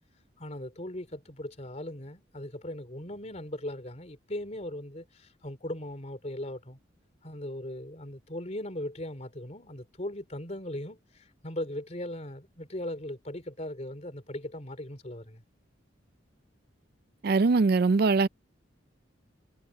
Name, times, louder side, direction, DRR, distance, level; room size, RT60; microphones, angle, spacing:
voice 1, 0.4-6.8 7.2-15.4, left 1 dB, 35° left, 3.4 m, -38 dB
voice 2, 17.2-18.3, right 4 dB, 50° right, 0.4 m, -22 dB
head